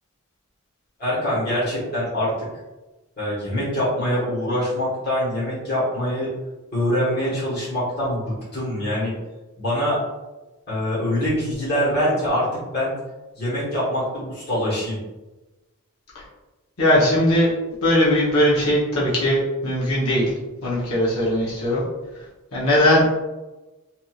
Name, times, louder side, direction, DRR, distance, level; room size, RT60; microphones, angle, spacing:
voice 1, 1.0-2.3 3.2-6.3 6.7-9.1 9.6-10.0 10.7-12.5 12.7-12.9 13.3-15.0, equal, 45° left, -9 dB, 1.3 m, -24 dB
voice 2, 16.8-17.5 17.8-20.2 20.6-21.8 22.5-23.1, left 1 dB, 75° left, -7 dB, 0.9 m, -19 dB
2.9 x 2.6 x 2.4 m, 1.1 s
head